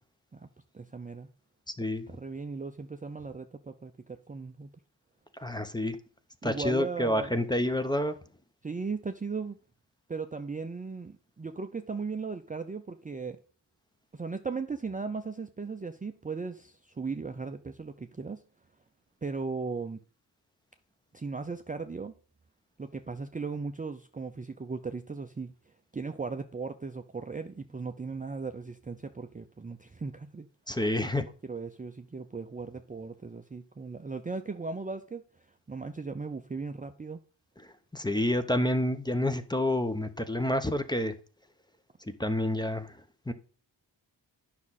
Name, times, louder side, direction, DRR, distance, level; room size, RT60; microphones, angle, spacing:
voice 1, 0.7-1.3 2.1-4.7 6.4-7.3 8.6-9.6 10.1-13.4 14.1-18.4 19.2-20.0 21.1-22.1 22.8-30.5 31.0-35.2 35.7-37.2, right 4 dB, 20° right, 0.5 m, -37 dB
voice 2, 1.8-2.2 5.4-6.0 6.4-8.2 30.7-31.2 37.9-41.1 42.1-43.0 43.3-43.4, left 1 dB, 10° left, 0.8 m, -28 dB
9.6 x 6.0 x 4.1 m
cardioid pair, 85°, 43 cm